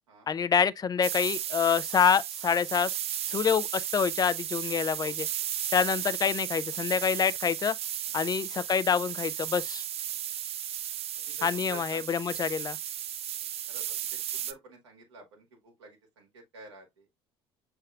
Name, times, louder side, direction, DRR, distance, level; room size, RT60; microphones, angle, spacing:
voice 1, 0.3-2.9 3.3-5.3 5.7-7.8 8.1-9.8 11.4-12.8, left 7 dB, 30° left, 0.4 m, -26 dB
sound 1, 1.0-14.5, right 11 dB, 45° right, 0.5 m, -35 dB
voice 2, 11.3-12.1 13.3-17.2, right 2 dB, 85° right, 1.7 m, -50 dB
6.5 x 3.4 x 2.3 m
hypercardioid pair, 60°, 14 cm